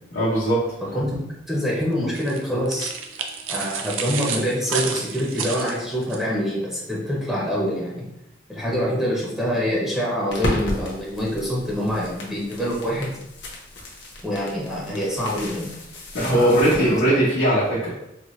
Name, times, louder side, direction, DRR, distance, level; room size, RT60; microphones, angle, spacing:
voice 1, 0.1-0.6 16.1-17.9, right 1 dB, 90° left, -10 dB, 1.0 m, -19 dB
voice 2, 1.5-2.9 3.5-8.0 8.5-13.2 14.2-15.7 16.2-17.0, equal, ahead, -6 dB, 0.6 m, -25 dB
sound 1, 2.1-6.2, right 6 dB, 80° right, 0.4 m, -30 dB
sound 2, 10.3-17.0, left 1 dB, 60° left, 0.8 m, -33 dB
4.1 x 2.1 x 3.0 m, 0.87 s
head